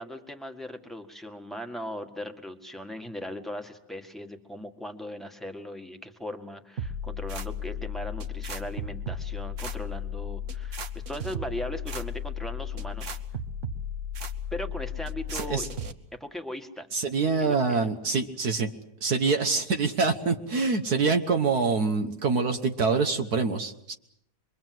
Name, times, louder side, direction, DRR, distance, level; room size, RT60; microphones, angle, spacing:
voice 1, 0.0-10.8 11.1-13.2 14.5-15.7 16.2-16.9 17.4-17.9, left 1 dB, ahead, 5 dB, 1.6 m, -38 dB
sound 1, 6.8-15.9, left 4 dB, 50° right, 1.4 m, -35 dB
voice 2, 15.3-15.7 16.9-18.7 19.0-23.9, right 4 dB, 65° right, 6 dB, 1.7 m, -25 dB
26.0 x 23.0 x 7.8 m, 0.77 s
omnidirectional pair, 1.8 m